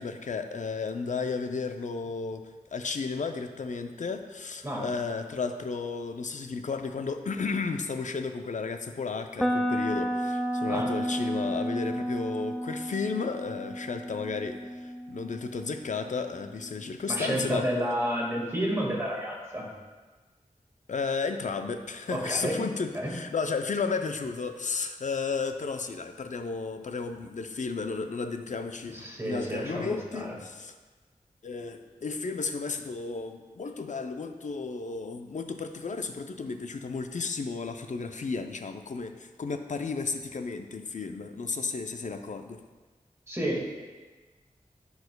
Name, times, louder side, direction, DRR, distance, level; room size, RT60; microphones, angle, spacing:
voice 1, 0.0-17.7 20.9-30.7 31.4-42.6, left 4 dB, 60° left, 7 dB, 0.5 m, -33 dB
sound 1, 9.4-17.3, equal, ahead, 0.4 m, -32 dB
voice 2, 17.1-19.7 22.1-22.6 22.9-23.1 28.9-30.3 43.3-43.8, equal, 20° right, -3 dB, 1.7 m, -30 dB
10.5 x 4.8 x 2.2 m, 1.3 s
wide cardioid pair, 50°, 14 cm